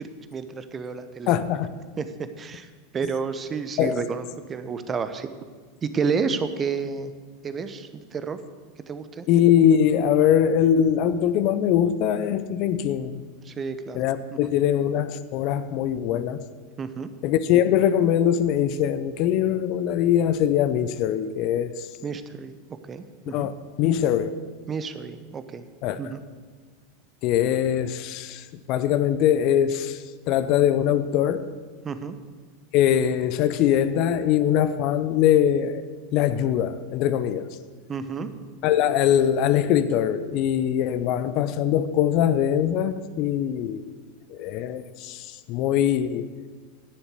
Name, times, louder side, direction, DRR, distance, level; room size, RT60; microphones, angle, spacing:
voice 1, 0.0-1.3 2.0-2.1 2.4-5.3 5.8-7.1 7.4-8.4 8.9-9.3 13.4-14.0 14.3-14.5 16.8-17.1 22.0-22.6 22.9-23.5 24.7-25.7 26.0-26.2 31.8-32.2 37.9-38.3, right 5 dB, 25° right, 0.9 m, -30 dB
voice 2, 1.3-1.7 3.8-4.0 9.3-13.2 13.9-16.5 17.2-21.9 23.3-23.5 23.8-24.3 25.8-26.0 27.2-30.0 30.3-31.6 32.7-35.8 36.1-37.5 38.6-43.9 44.3-46.3, left 10 dB, 50° left, 0.6 m, -22 dB
11.0 x 7.0 x 8.2 m
hypercardioid pair, 85°, 0 cm